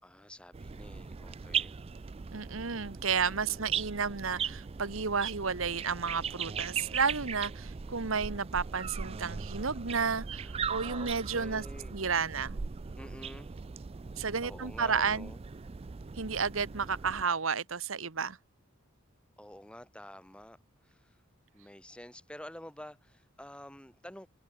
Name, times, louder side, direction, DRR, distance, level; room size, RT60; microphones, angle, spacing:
voice 1, 0.0-1.8 3.3-3.7 10.7-11.9 13.0-13.6 14.4-15.4 19.4-20.6 20.8-21.2 21.5-24.3, left 1 dB, 5° left, 5.6 m, -49 dB
sound 1, 0.5-17.2, right 6 dB, 30° right, 0.4 m, -39 dB
voice 2, 2.3-11.6 11.9-12.6 14.2-15.3 16.2-18.4, right 5 dB, 75° right, 1.4 m, -32 dB
head